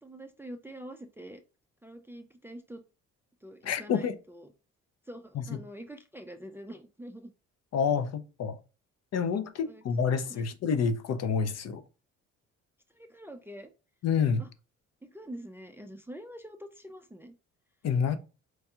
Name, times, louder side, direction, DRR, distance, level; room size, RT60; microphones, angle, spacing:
voice 1, 0.0-1.4 1.8-2.8 3.4-4.5 5.1-7.3 9.6-9.8 10.3-10.4 12.9-13.7 14.4-14.5 15.0-17.4, right 1 dB, 10° right, 0.3 m, -45 dB
voice 2, 3.6-4.2 5.3-5.6 7.7-8.6 9.1-11.8 14.0-14.4 17.8-18.2, left 6 dB, 60° left, 0.5 m, -28 dB
4.5 x 2.7 x 2.3 m
cardioid pair, 90°, 30 cm